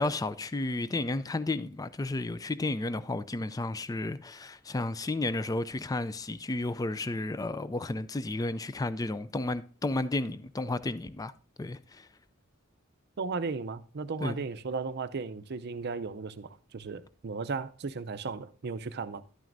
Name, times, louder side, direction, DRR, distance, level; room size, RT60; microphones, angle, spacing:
voice 1, 0.0-11.3 11.6-12.1 14.2-14.4, left 2 dB, 20° left, 0.4 m, -32 dB
voice 2, 13.2-19.2, right 4 dB, 55° right, 0.5 m, -35 dB
11.5 x 9.2 x 2.6 m
head